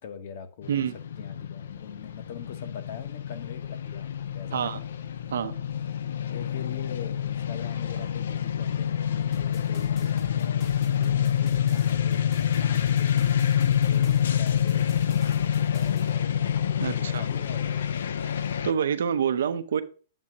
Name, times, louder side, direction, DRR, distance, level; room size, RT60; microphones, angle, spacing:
voice 1, 0.0-5.0 6.3-12.3 12.6-13.4 13.8-16.6 16.9-18.3, left 7 dB, 45° left, 0.9 m, -43 dB
sound 1, 0.6-18.7, left 9 dB, 80° left, 0.4 m, -27 dB
sound 2, 9.3-16.1, left 6 dB, 20° left, 0.6 m, -45 dB
voice 2, 16.8-17.2 18.3-18.4 18.6-19.8, right 8 dB, 90° right, 0.6 m, -27 dB
7.4 x 2.8 x 5.9 m
supercardioid pair, 175°, 0 cm